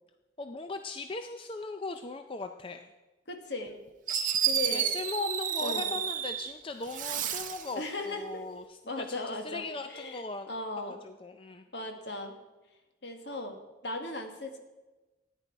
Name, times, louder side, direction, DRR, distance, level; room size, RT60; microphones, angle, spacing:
voice 1, 0.4-2.9 4.7-10.5 10.8-11.6, left 3 dB, 25° left, 7 dB, 0.4 m, -39 dB
voice 2, 3.3-3.8 4.4-4.9 5.6-5.9 7.7-8.4 8.9-9.6 9.9-11.0 11.7-12.4 13.0-14.6, left 2 dB, 60° left, 4 dB, 1.5 m, -37 dB
Fireworks, 3.7-3.8 4.1-6.5 6.9-7.7, right 9 dB, 45° right, 0.7 m, -30 dB
14.0 x 9.9 x 4.6 m, 1.1 s
head